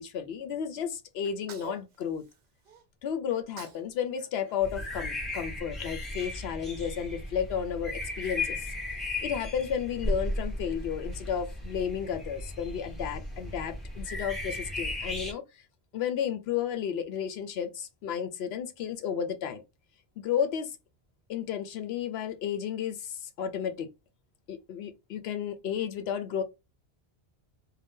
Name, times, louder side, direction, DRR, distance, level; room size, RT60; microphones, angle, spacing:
voice 1, 0.0-2.2 3.0-8.7 9.2-15.4 15.9-19.6 20.2-20.8 21.3-23.9 24.5-26.4, left 8 dB, 75° left, 0.8 m, -32 dB
Sneeze, 1.2-2.8 3.3-3.9 4.2-5.6, right 7 dB, 65° right, 0.7 m, -49 dB
sound 1, 4.6-15.3, left 1 dB, ahead, 1.1 m, -36 dB
2.6 x 2.2 x 3.5 m
omnidirectional pair, 1.1 m